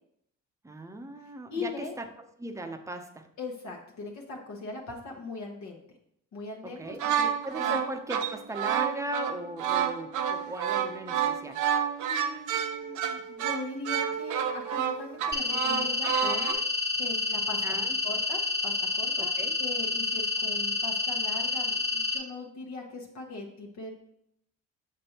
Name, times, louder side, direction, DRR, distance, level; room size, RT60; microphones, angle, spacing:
voice 1, 0.6-2.1 2.4-3.3 6.6-7.0 7.4-11.7 17.6-18.0 19.2-19.6, right 1 dB, 10° right, 6 dB, 0.7 m, -38 dB
voice 2, 1.5-1.9 3.4-5.8 6.3-7.8 12.0-16.6 16.9-17.6 18.0-19.3 19.6-23.9, left 3 dB, 65° left, -2 dB, 1.1 m, -40 dB
sound 1, 6.9-16.5, right 8 dB, 80° right, 0.6 m, -30 dB
sound 2, 15.3-22.2, left 3 dB, 35° left, 1.3 m, -29 dB
6.6 x 5.2 x 2.9 m, 0.74 s
cardioid pair, 90°, 30 cm